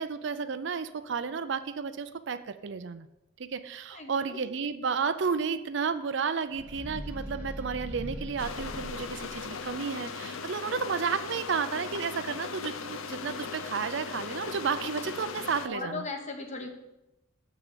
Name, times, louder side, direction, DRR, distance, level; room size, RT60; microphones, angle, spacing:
voice 1, 0.0-3.1 3.4-16.0, right 5 dB, 60° right, 11 dB, 0.5 m, -32 dB
voice 2, 3.9-4.4 10.6-10.8 15.6-16.7, left 3 dB, 35° left, 4 dB, 1.2 m, -37 dB
sound 1, 6.5-9.8, equal, 10° right, 1.3 m, -40 dB
sound 2, 8.4-15.7, left 5 dB, 85° left, 0.6 m, -38 dB
7.8 x 6.1 x 6.8 m, 0.94 s
head